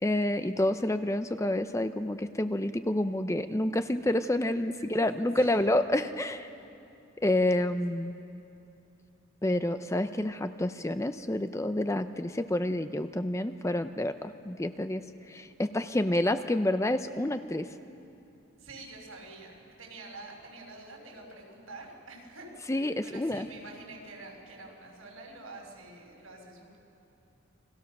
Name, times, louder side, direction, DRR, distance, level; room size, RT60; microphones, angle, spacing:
voice 1, 0.0-6.5 7.2-8.2 9.4-17.7 22.7-23.5, left 1 dB, 15° left, 10 dB, 0.5 m, -29 dB
voice 2, 4.6-5.1 5.4-5.7 18.6-26.8, right 2 dB, 75° right, 0 dB, 6.1 m, -47 dB
29.0 x 22.5 x 6.6 m, 2.7 s
head